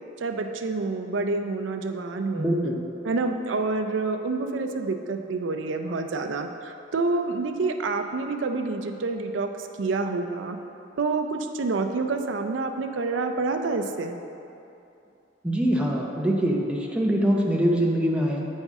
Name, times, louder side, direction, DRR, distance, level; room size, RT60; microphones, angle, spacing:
voice 1, 0.2-2.5 3.0-10.6 11.0-14.2, right 3 dB, 80° right, 6 dB, 0.5 m, -28 dB
voice 2, 2.4-2.8 15.4-18.5, equal, 5° right, -2 dB, 0.7 m, -23 dB
8.1 x 5.4 x 3.6 m, 2.8 s
head